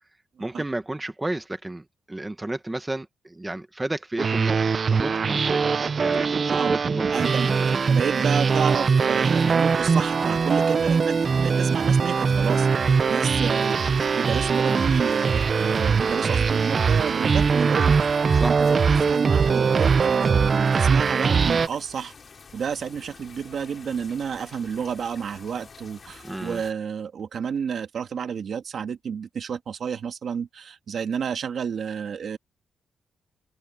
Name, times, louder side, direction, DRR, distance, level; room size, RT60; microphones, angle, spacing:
voice 1, 0.4-5.6 6.0-8.1 14.7-15.0 18.3-18.6 26.2-26.6, right 2 dB, 10° right, 1.1 m, -32 dB
sound 1, 4.2-21.7, right 5 dB, 35° right, 0.6 m, -21 dB
sound 2, 7.1-26.7, left 5 dB, 35° left, 4.0 m, -47 dB
voice 2, 7.1-7.5 7.9-22.1 22.5-32.4, right 7 dB, 50° right, 1.8 m, -30 dB
open air
wide cardioid pair, 165°, 0 cm